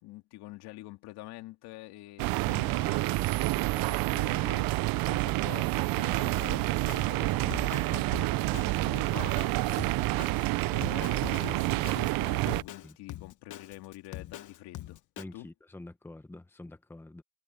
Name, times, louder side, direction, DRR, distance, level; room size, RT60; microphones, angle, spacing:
voice 1, 0.0-15.0 15.3-15.5, left 18 dB, 80° left, 2.4 m, -47 dB
sound 1, 2.2-12.6, right 20 dB, 65° right, 0.6 m, -28 dB
Drum kit, 6.5-15.2, left 13 dB, 50° left, 1.3 m, -43 dB
voice 2, 15.2-17.2, left 2 dB, 5° left, 1.1 m, -46 dB
cardioid pair, 140°, 39 cm